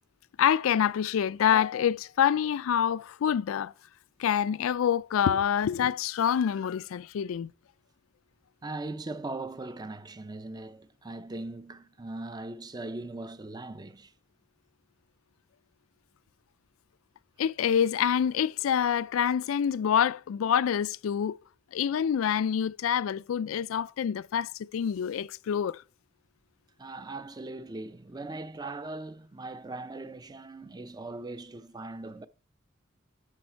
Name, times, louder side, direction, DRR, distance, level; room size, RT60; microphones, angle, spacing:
voice 1, 0.4-3.7 4.2-7.5 17.4-21.4 21.7-25.8, left 8 dB, 90° left, 0.3 m, -26 dB
voice 2, 8.6-14.1 26.8-32.3, right 2 dB, 20° right, 0.5 m, -39 dB
10.5 x 7.0 x 4.5 m
head